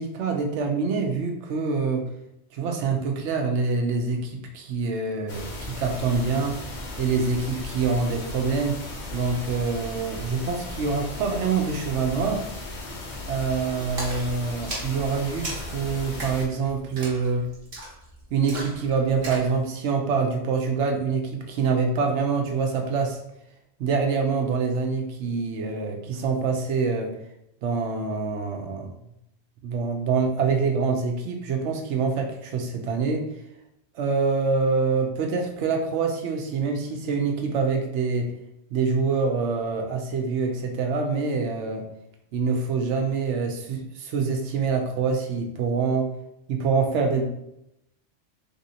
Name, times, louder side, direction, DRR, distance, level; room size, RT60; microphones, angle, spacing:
voice 1, 0.0-2.1 2.5-6.6 7.0-8.8 9.1-12.4 13.3-17.5 18.3-23.2 23.8-27.1 27.6-28.9 29.6-33.3 33.9-38.3 38.7-41.9 42.3-46.1 46.5-47.2, right 4 dB, 75° right, 3 dB, 0.9 m, -25 dB
sound 1, 5.3-16.5, left 2 dB, 55° left, 0.6 m, -36 dB
Splash splatter, 14.0-19.5, right 1 dB, 55° right, 1.2 m, -38 dB
3.4 x 2.7 x 2.7 m, 0.81 s
omnidirectional pair, 1.3 m